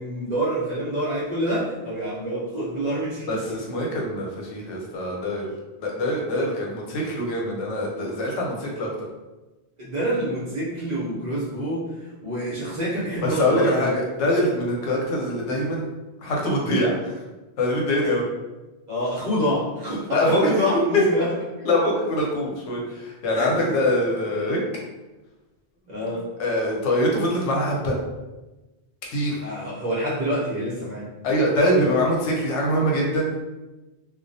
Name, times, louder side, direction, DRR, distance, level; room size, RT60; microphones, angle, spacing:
voice 1, 0.0-3.4 6.3-6.5 9.8-11.9 12.2-13.9 18.9-21.7 23.3-23.8 25.9-26.3 29.4-31.1 31.7-32.1, equal, 45° right, -7 dB, 0.7 m, -27 dB
voice 2, 3.3-5.5 5.8-8.9 13.2-15.9 16.2-17.1 17.6-18.2 20.1-20.5 21.7-24.6 26.0-28.0 29.1-29.4 31.2-33.3, left 1 dB, 85° left, -2 dB, 0.9 m, -24 dB
2.2 x 2.1 x 2.6 m, 1.1 s
omnidirectional pair, 1.2 m